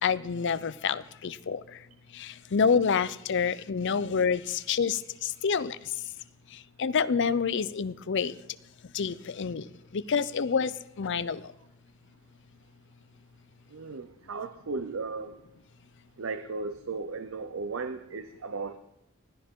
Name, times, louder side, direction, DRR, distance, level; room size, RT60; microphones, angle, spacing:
voice 1, 0.0-1.6 2.1-5.8 6.8-8.4 8.9-9.7 9.9-11.5, left 6 dB, 60° left, 16 dB, 0.5 m, -28 dB
voice 2, 13.7-15.4 16.2-18.8, right 4 dB, 65° right, 10 dB, 0.6 m, -36 dB
20.5 x 13.5 x 3.7 m, 0.88 s
head